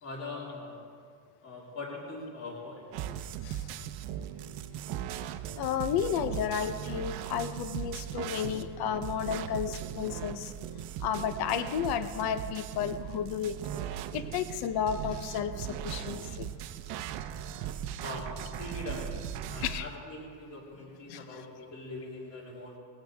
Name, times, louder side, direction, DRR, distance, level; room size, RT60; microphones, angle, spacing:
voice 1, 0.0-0.8 1.4-2.9 18.0-19.1 19.5-22.7, left 2 dB, 35° left, -5 dB, 4.0 m, -42 dB
sound 1, 2.9-19.8, right 10 dB, 55° right, 0.8 m, -38 dB
voice 2, 5.6-10.5 11.0-13.8 14.1-16.5 19.6-19.8 21.1-21.4, left 8 dB, 55° left, 11 dB, 0.9 m, -32 dB
19.5 x 15.5 x 3.5 m, 2.1 s
cardioid pair, 150°, 47 cm